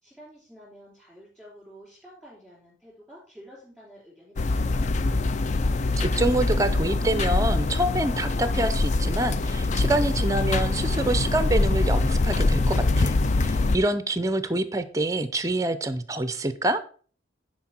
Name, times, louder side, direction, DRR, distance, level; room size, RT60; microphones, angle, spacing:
voice 1, 0.0-4.9, equal, ahead, -9 dB, 3.6 m, -50 dB
sound 1, 4.4-13.8, left 2 dB, 35° left, 0.3 m, -24 dB
voice 2, 6.0-16.8, right 1 dB, 15° right, 11 dB, 0.6 m, -26 dB
9.9 x 4.6 x 4.4 m, 0.43 s
head